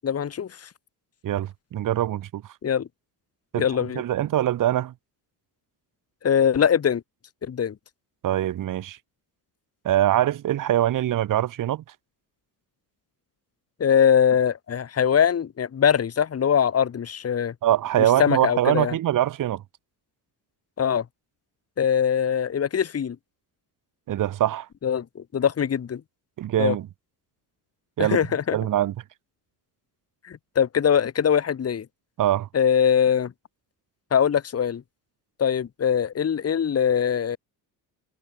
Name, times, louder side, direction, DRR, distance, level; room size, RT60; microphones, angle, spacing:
voice 1, 0.0-0.7 2.6-2.9 3.5-4.0 6.2-7.0 7.4-7.7 13.8-17.5 18.0-18.9 20.8-21.0 21.8-23.2 24.8-26.0 26.6-26.7 28.0-28.6 30.2-31.8 32.5-33.3 34.1-34.8 35.4-37.4, left 8 dB, 35° left, 1.7 m, -22 dB
voice 2, 1.2-2.4 3.5-3.7 3.9-4.9 8.2-9.0 9.8-11.8 17.6-19.6 24.1-24.7 26.4-26.9 28.0-28.2 28.5-28.9 32.2-32.5, right 12 dB, 50° right, 0.9 m, -23 dB
cardioid pair, 115°, 43 cm